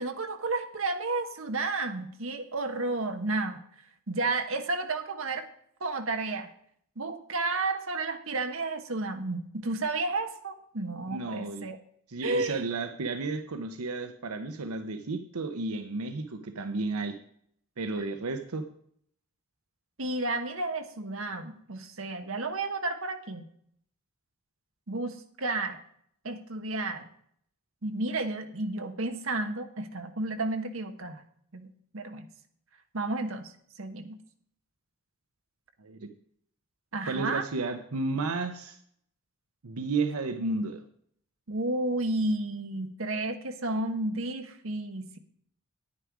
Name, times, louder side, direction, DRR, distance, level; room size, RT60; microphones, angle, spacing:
voice 1, 0.0-3.6 4.1-5.5 5.8-6.5 7.0-11.8 12.2-12.6 18.0-18.1 20.0-23.4 24.9-25.8 26.2-27.1 27.8-31.2 31.5-31.7 31.9-32.3 32.9-33.5 33.8-34.2 36.9-37.5 41.5-45.2, right 2 dB, 65° right, 7 dB, 1.2 m, -32 dB
voice 2, 11.1-11.6 12.1-17.2 17.8-18.6 35.8-36.1 37.1-38.8 39.6-40.8, right 3 dB, 90° right, 8 dB, 0.8 m, -32 dB
9.8 x 9.6 x 4.7 m, 0.66 s
head